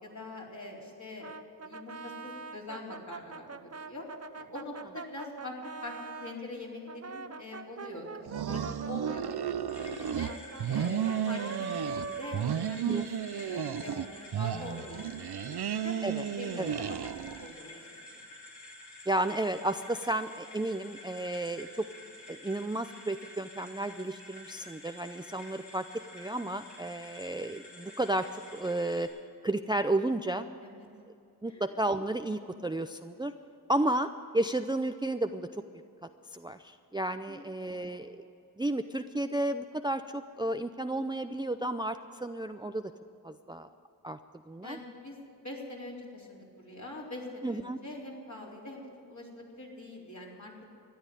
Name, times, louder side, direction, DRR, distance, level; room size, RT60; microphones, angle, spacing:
voice 1, 0.0-1.4 1.6-4.1 4.3-5.9 6.2-10.3 10.7-12.8 13.3-16.0 16.4-18.2 30.6-30.9 31.4-31.6 37.3-38.0 44.6-45.2 45.4-48.8 49.1-50.5, left 2 dB, 45° left, -3 dB, 4.1 m, -44 dB
Brass instrument, 1.2-6.4 6.8-13.2, right 4 dB, 40° right, 0.8 m, -43 dB
sound 1, 8.2-10.3 10.6-12.1 12.3-14.1 14.3-17.5, right 9 dB, 70° right, 0.6 m, -33 dB
sound 2, 9.7-29.1, left 1 dB, 75° left, 3.7 m, -50 dB
voice 2, 19.1-21.9 22.3-25.8 26.1-28.3 28.5-29.1 29.4-30.5 31.4-33.3 33.7-35.6 36.3-38.2 38.6-42.9 43.2-43.7 44.0-44.2 44.5-44.8 47.4-47.8, right 1 dB, 10° right, 9 dB, 0.5 m, -32 dB
13.5 x 10.5 x 9.8 m, 2.6 s
cardioid pair, 45°, 40 cm